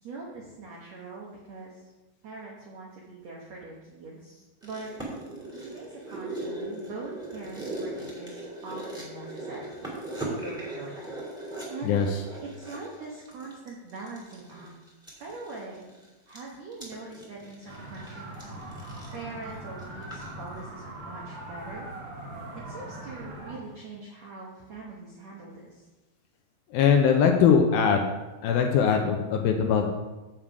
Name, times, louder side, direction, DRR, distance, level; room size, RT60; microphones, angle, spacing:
voice 1, 0.0-1.8 2.2-4.9 5.5-9.9 10.2-11.1 11.7-12.0 12.4-14.7 15.2-15.8 16.3-18.7 19.1-21.9 22.6-25.8, right 3 dB, 75° right, -3 dB, 1.5 m, -42 dB
sound 1, 4.6-20.3 20.6-20.7, right 1 dB, ahead, 1.6 m, -39 dB
sound 2, 17.7-23.6, right 1 dB, 55° right, 1.3 m, -41 dB
voice 2, 26.7-28.1 28.4-29.9, left 7 dB, 80° left, 3 dB, 2.3 m, -21 dB
7.4 x 7.3 x 4.8 m, 1.1 s
omnidirectional pair, 4.7 m